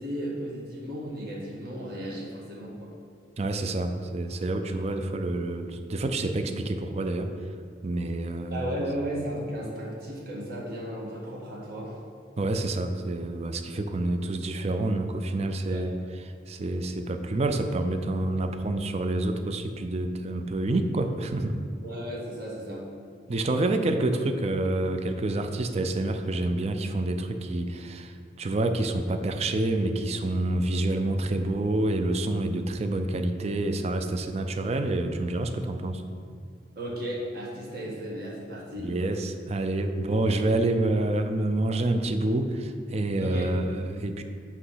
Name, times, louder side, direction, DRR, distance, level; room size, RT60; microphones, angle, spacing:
voice 1, 0.0-2.9 4.7-4.9 8.5-12.0 15.7-15.9 21.8-22.9 36.7-38.9 40.0-40.4 43.2-43.6, equal, 60° right, -4 dB, 1.6 m, -35 dB
voice 2, 3.4-7.3 7.8-8.8 12.4-15.9 16.5-21.6 23.3-36.0 38.8-44.2, right 2 dB, 35° right, 7 dB, 0.4 m, -28 dB
8.2 x 3.0 x 5.6 m, 2.2 s
head